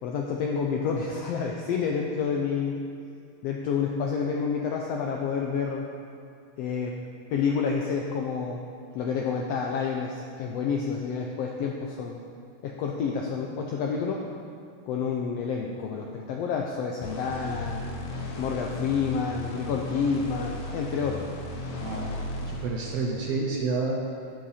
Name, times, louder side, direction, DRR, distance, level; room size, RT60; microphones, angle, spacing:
voice 1, 0.0-2.8 3.4-5.8 6.6-6.9 7.3-8.6 8.9-12.2 12.6-14.2 14.9-17.8 18.4-21.3, left 6 dB, 85° left, 0 dB, 1.4 m, -29 dB
sound 1, 17.0-23.5, left 1 dB, 65° left, 1.6 m, -36 dB
voice 2, 21.7-22.1 22.4-24.0, right 3 dB, 70° right, -1 dB, 1.5 m, -29 dB
10.5 x 7.7 x 4.2 m, 2.5 s
omnidirectional pair, 3.5 m